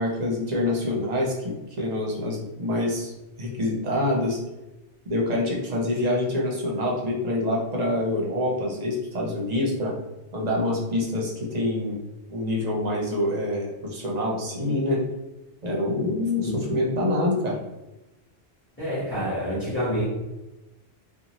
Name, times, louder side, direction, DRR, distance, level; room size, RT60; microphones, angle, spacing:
voice 1, 0.0-3.1 3.4-4.4 5.1-9.9 10.3-12.0 12.3-15.0 15.6-17.6, left 1 dB, 45° right, -2 dB, 0.7 m, -26 dB
voice 2, 18.8-20.1, equal, 10° left, -9 dB, 1.0 m, -27 dB
2.6 x 2.3 x 2.9 m, 0.99 s
omnidirectional pair, 1.1 m